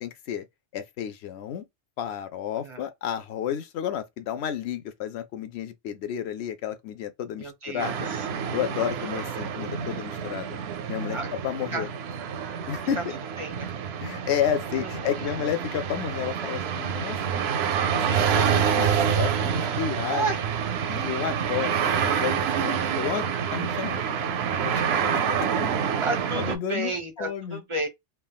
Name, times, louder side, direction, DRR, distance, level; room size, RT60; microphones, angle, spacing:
voice 1, 0.0-0.4 0.7-1.6 2.0-8.1 8.5-10.6 10.9-11.2 11.4-11.9 12.7-13.1 14.0-17.4 17.9-20.3 20.9-25.7 26.3-27.6, left 9 dB, 65° left, 0.8 m, -31 dB
voice 2, 7.4-8.2 8.8-9.3 11.1-11.3 11.7-11.9 13.0-13.1 13.4-13.7 14.8-15.4 20.1-20.4 20.8-20.9 26.0-27.9, right 2 dB, 30° right, 0.7 m, -32 dB
sound 1, 7.8-26.6, right 8 dB, 65° right, 0.7 m, -27 dB
3.4 x 2.2 x 2.3 m
omnidirectional pair, 1.2 m